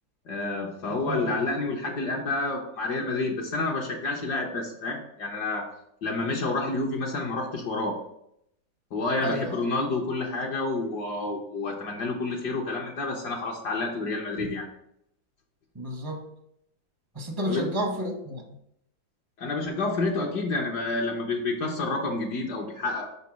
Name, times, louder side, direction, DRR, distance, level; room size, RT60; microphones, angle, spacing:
voice 1, 0.3-5.6 6.0-8.0 8.9-14.7 17.4-17.6 19.4-23.1, left 3 dB, 65° left, -1 dB, 1.4 m, -29 dB
voice 2, 9.2-9.6 14.4-14.5 15.7-16.2 17.2-18.4, equal, 25° right, 1 dB, 0.5 m, -31 dB
5.2 x 4.1 x 6.0 m, 0.75 s
omnidirectional pair, 2.1 m